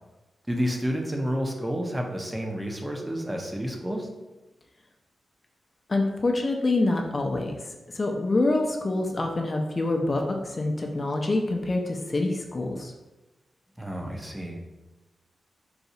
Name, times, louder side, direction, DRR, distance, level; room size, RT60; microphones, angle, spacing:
voice 1, 0.5-4.1 13.8-14.6, equal, 15° right, 1 dB, 0.6 m, -30 dB
voice 2, 5.9-7.6 7.9-12.9, left 2 dB, 40° left, 2 dB, 0.4 m, -26 dB
4.0 x 2.3 x 2.7 m, 1.1 s
cardioid pair, 65°, 0 cm